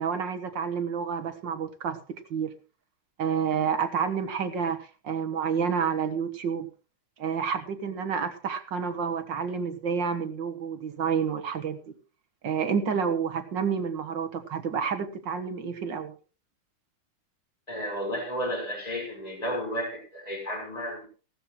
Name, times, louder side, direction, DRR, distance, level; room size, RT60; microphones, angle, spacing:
voice 1, 0.0-2.5 3.2-6.7 7.2-11.8 12.4-16.2, right 6 dB, 60° right, 9 dB, 2.0 m, -29 dB
voice 2, 17.7-21.1, equal, 15° left, 2 dB, 5.2 m, -32 dB
17.0 x 13.0 x 3.2 m, 0.35 s
omnidirectional pair, 2.3 m